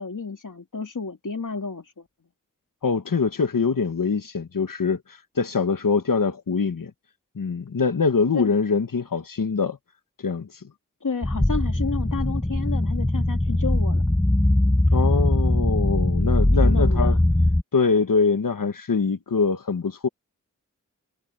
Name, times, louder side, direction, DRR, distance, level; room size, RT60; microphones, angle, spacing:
voice 1, 0.0-2.1 8.3-8.6 11.0-14.0 16.6-17.2, left 4 dB, 70° left, 3.0 m, -31 dB
voice 2, 2.8-5.0 5.3-6.9 7.3-9.8 10.2-10.5 14.9-17.2 17.7-20.1, left 5 dB, 90° left, 1.6 m, -23 dB
sound 1, 11.2-17.6, left 1 dB, 10° left, 0.8 m, -21 dB
wide cardioid pair, 65°, 32 cm